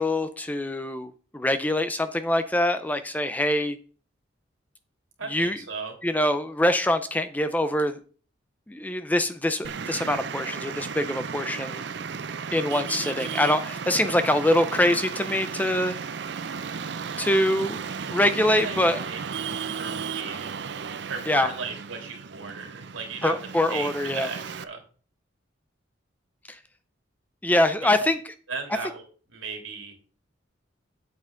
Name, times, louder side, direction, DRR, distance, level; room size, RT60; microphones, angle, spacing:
voice 1, 0.0-3.8 5.3-5.6 6.0-8.0 8.7-11.8 12.5-16.0 17.2-17.8 18.1-19.0 21.3-21.5 23.2-24.3 26.5-26.6 27.4-28.2, left 1 dB, 10° left, 0.4 m, -24 dB
voice 2, 5.2-5.9 18.5-19.2 19.5-20.7 21.1-23.3 23.7-24.8 28.0-28.1 28.5-29.0 29.3-29.9, right 5 dB, 80° right, 2.9 m, -36 dB
Traffic noise roadway noise, 9.6-24.6, right 6 dB, 60° right, 0.5 m, -34 dB
8.6 x 8.0 x 3.8 m
head